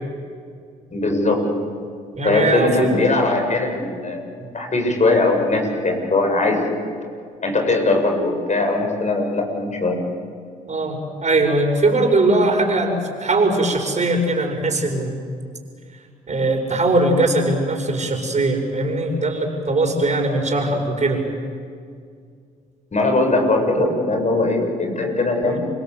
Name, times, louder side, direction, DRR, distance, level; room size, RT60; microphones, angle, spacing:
voice 1, 0.9-1.4 2.2-4.2 4.5-6.8 7.4-10.0 22.9-25.6, left 2 dB, 40° left, 3 dB, 7.5 m, -20 dB
voice 2, 2.1-2.9 10.7-15.2 16.3-21.2 23.7-23.9 25.4-25.6, right 2 dB, 35° right, 3 dB, 7.2 m, -20 dB
29.5 x 24.0 x 8.2 m, 2.2 s
hypercardioid pair, 50°, 19 cm